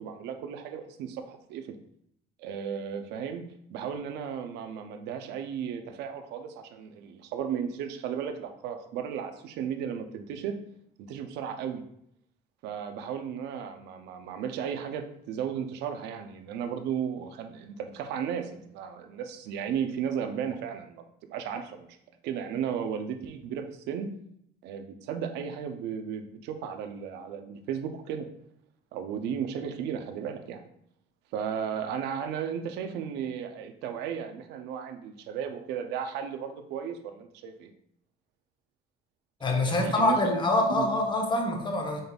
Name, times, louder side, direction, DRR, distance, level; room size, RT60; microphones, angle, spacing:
voice 1, 0.0-1.8 2.4-3.4 3.7-10.6 11.0-11.8 12.6-22.0 22.2-24.1 24.6-28.3 28.9-30.7 31.3-37.7 39.6-40.3 40.8-40.9, right 8 dB, 85° right, 7 dB, 0.5 m, -35 dB
voice 2, 39.4-42.0, left 2 dB, 25° left, 2 dB, 0.9 m, -25 dB
5.2 x 3.9 x 2.3 m, 0.72 s
cardioid pair, 110°, 17 cm